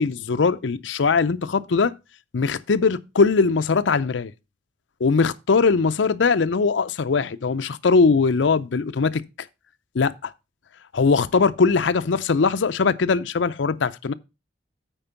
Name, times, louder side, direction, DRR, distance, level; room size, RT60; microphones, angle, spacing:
voice 1, 0.0-1.9 2.3-4.3 5.0-9.2 9.9-10.1 10.9-14.1, left 4 dB, 75° left, 0.5 m, -20 dB
9.0 x 4.5 x 5.7 m
head